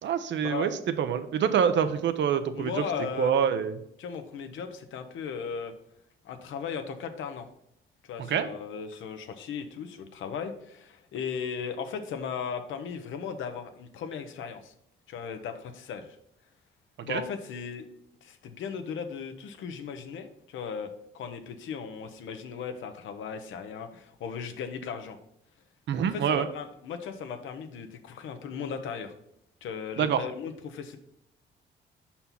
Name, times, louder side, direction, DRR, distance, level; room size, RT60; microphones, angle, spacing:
voice 1, 0.0-0.7 1.0-2.7 3.2-3.7 8.3-8.5 17.1-17.2 25.9-26.5 30.0-30.2, right 8 dB, 65° right, 10 dB, 0.7 m, -25 dB
voice 2, 2.5-3.4 4.0-5.7 6.2-7.5 8.1-14.7 15.1-16.2 17.0-17.8 18.2-25.2 26.0-29.1 29.6-31.0, left 6 dB, 75° left, 7 dB, 0.8 m, -37 dB
5.5 x 4.3 x 5.9 m, 0.76 s
cardioid pair, 90°, 20 cm